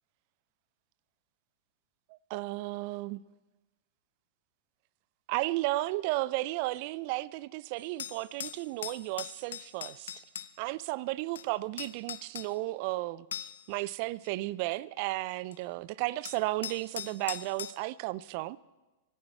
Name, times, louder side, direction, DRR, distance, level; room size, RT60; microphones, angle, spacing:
voice 1, 2.1-3.2 5.3-10.1 10.6-18.6, right 19 dB, 50° right, 0.4 m, -34 dB
sound 1, 7.8-10.5 11.4-11.5 11.8-12.5 13.3-13.7 14.2-14.3 15.5-15.6 16.3-17.7, left 9 dB, 75° left, 0.7 m, -40 dB
25.0 x 11.0 x 4.5 m
hypercardioid pair, 105°, 0 cm